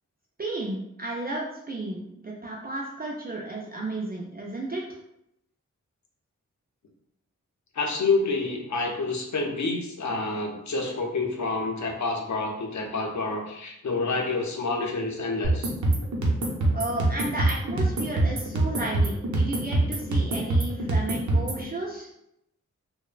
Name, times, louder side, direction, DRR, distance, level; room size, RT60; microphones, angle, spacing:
voice 1, 0.4-4.8 16.7-22.1, right 2 dB, 30° right, -3 dB, 0.4 m, -33 dB
voice 2, 7.7-15.7 16.0-16.1, left 3 dB, 65° left, 2 dB, 0.6 m, -28 dB
sound 1, 15.4-21.6, right 2 dB, 65° right, 0.6 m, -25 dB
3.0 x 2.0 x 2.4 m, 0.81 s
wide cardioid pair, 85°, 31 cm